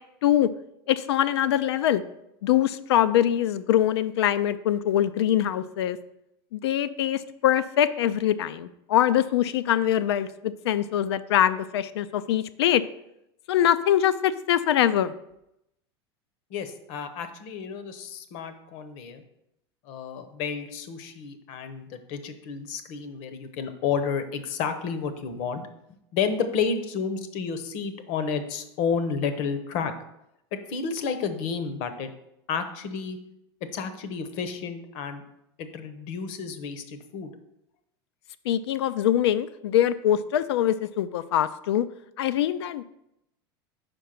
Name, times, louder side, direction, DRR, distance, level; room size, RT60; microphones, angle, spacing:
voice 1, 0.9-2.0 2.4-6.0 6.5-12.8 13.5-15.1 38.5-41.9 42.2-42.8, left 11 dB, 85° left, 15 dB, 0.4 m, -23 dB
voice 2, 16.5-19.2 19.8-25.7 26.1-29.9 30.5-32.1 32.5-33.2 33.7-35.2 35.6-37.3, left 6 dB, 60° left, 10 dB, 0.8 m, -31 dB
5.2 x 4.6 x 5.8 m, 0.83 s
supercardioid pair, 105°, 13 cm